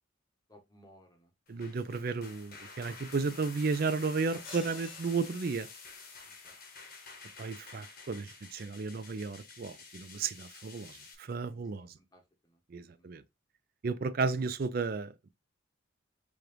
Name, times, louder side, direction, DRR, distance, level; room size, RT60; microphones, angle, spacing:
voice 1, 0.5-1.8 4.3-4.4 6.3-6.6 11.5-11.6 12.0-12.6 12.8-13.1, equal, 20° left, 0.8 m, -61 dB
sound 1, 1.5-11.1, left 4 dB, 45° left, 0.9 m, -50 dB
voice 2, 1.5-5.7 7.4-11.9 12.7-13.2 13.8-15.3, right 4 dB, 45° right, 0.4 m, -33 dB
sound 2, 4.4-6.2, left 4 dB, 90° left, 1.9 m, -50 dB
4.9 x 2.5 x 3.0 m
head